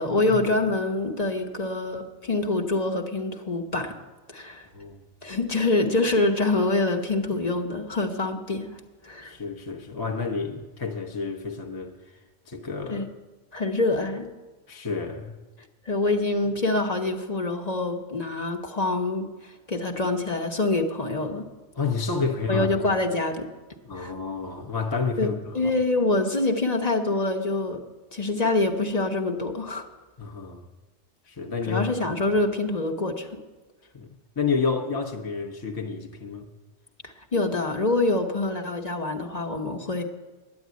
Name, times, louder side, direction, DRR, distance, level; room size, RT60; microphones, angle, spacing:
voice 1, 0.0-3.9 4.3-4.7 5.2-8.7 9.0-9.3 12.9-13.1 13.5-14.3 15.9-19.3 19.7-21.5 22.5-23.5 24.0-24.1 25.2-25.3 25.5-27.8 28.1-29.9 31.6-33.3 37.0-40.0, left 2 dB, 40° left, 1.1 m, -25 dB
voice 2, 9.2-11.9 12.5-13.1 14.7-15.4 21.8-22.7 23.8-25.7 30.2-30.6 31.3-31.9 33.9-34.1 34.4-36.5, left 5 dB, 25° left, 0.8 m, -30 dB
10.5 x 8.5 x 9.3 m
omnidirectional pair, 1.1 m